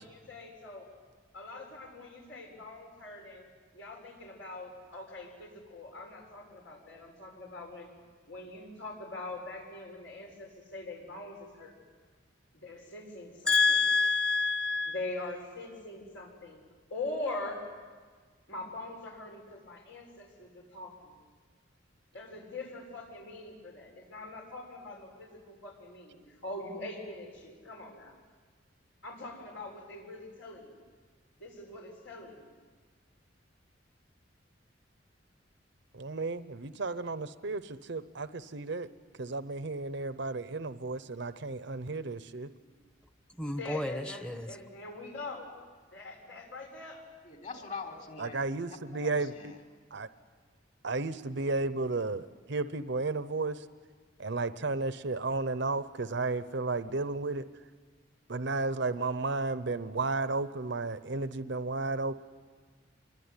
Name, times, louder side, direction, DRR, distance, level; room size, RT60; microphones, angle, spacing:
voice 1, 0.0-0.9 1.3-7.9 8.3-11.8 12.5-13.8 14.9-16.6 16.9-17.6 18.5-21.2 22.1-28.2 29.0-30.8 31.4-32.5 42.6-42.7 43.4-45.5 45.9-47.0, left 2 dB, 80° left, 0 dB, 6.9 m, -43 dB
voice 2, 13.5-14.9 43.4-44.5, left 4 dB, 5° left, 10 dB, 1.0 m, -27 dB
voice 3, 35.9-38.9 39.2-42.5 48.2-49.3 49.9-50.1 50.8-53.6 54.2-57.4 58.3-62.1, right 3 dB, 65° right, 12 dB, 0.8 m, -33 dB
voice 4, 47.2-49.6, left 4 dB, 45° left, 3 dB, 3.7 m, -44 dB
26.5 x 22.5 x 9.8 m, 1.5 s
head